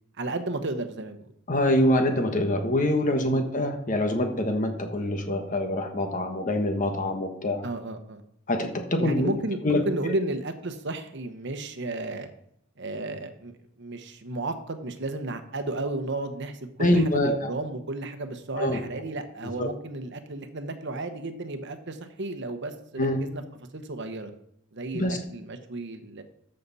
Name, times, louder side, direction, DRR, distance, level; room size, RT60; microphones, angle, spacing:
voice 1, 0.2-1.3 3.1-3.4 7.6-8.2 9.0-12.3 12.8-23.4 23.7-24.3 24.7-26.2, right 2 dB, 60° right, 8 dB, 1.0 m, -33 dB
voice 2, 1.5-7.7 8.5-9.3 9.6-9.8 16.8-17.5 18.6-18.8 19.6-19.7 23.0-23.2 24.9-25.2, left 1 dB, 40° left, 5 dB, 1.4 m, -25 dB
13.5 x 6.7 x 4.1 m, 0.73 s
head